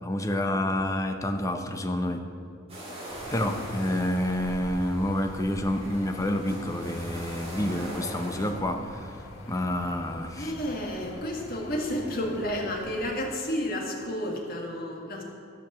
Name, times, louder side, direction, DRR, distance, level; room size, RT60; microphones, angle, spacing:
voice 1, 0.0-2.2 3.3-9.1 9.5-10.5, left 1 dB, 15° left, 5 dB, 0.7 m, -28 dB
sound 1, 2.7-8.5, right 1 dB, 30° right, 2.4 m, -42 dB
sound 2, 3.1-13.2, left 1 dB, 80° left, 2.0 m, -44 dB
voice 2, 10.4-15.2, equal, 50° left, 0 dB, 1.7 m, -31 dB
14.0 x 5.2 x 7.4 m, 2.3 s
head